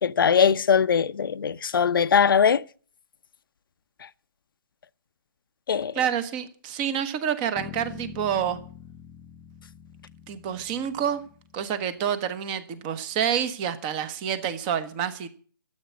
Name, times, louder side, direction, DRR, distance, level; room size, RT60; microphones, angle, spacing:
voice 1, 0.0-2.6 4.0-4.1 5.7-6.0, left 7 dB, 65° left, 0.7 m, -21 dB
voice 2, 5.9-8.6 10.3-11.2 11.5-15.3, right 8 dB, 20° right, 1.2 m, -28 dB
Bass guitar, 7.6-12.0, left 10 dB, 5° left, 0.5 m, -45 dB
13.0 x 8.1 x 8.5 m
hypercardioid pair, 160°, 12 cm